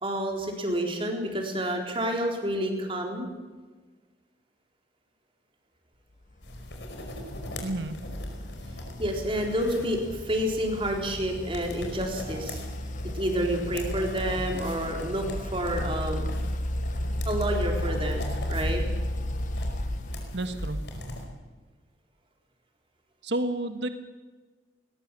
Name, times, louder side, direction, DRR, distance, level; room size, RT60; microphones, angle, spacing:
voice 1, 0.0-3.3 9.0-12.6 13.1-16.4 17.3-18.8, equal, 30° right, 2 dB, 4.2 m, -29 dB
sound 1, 6.4-21.2, left 1 dB, 70° left, 4.9 m, -39 dB
sound 2, 6.4-20.9, left 1 dB, 45° left, 1.0 m, -34 dB
voice 2, 7.6-8.0 20.3-20.8 23.2-23.9, right 1 dB, 75° right, 8 dB, 1.5 m, -30 dB
21.0 x 20.0 x 7.6 m, 1.3 s
head